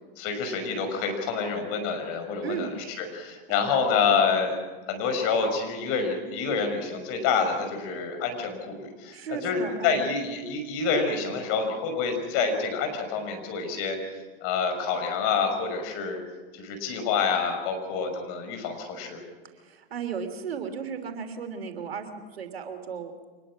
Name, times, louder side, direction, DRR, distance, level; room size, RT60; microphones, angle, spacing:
voice 1, 0.2-4.6 4.9-14.1 14.4-16.2 16.5-19.2, left 5 dB, 50° left, 6 dB, 5.8 m, -27 dB
voice 2, 2.4-2.7 3.5-3.7 9.1-10.1 19.5-23.1, right 6 dB, 85° right, 6 dB, 3.2 m, -35 dB
24.5 x 21.0 x 6.3 m, 1.3 s
hypercardioid pair, 105°, 30 cm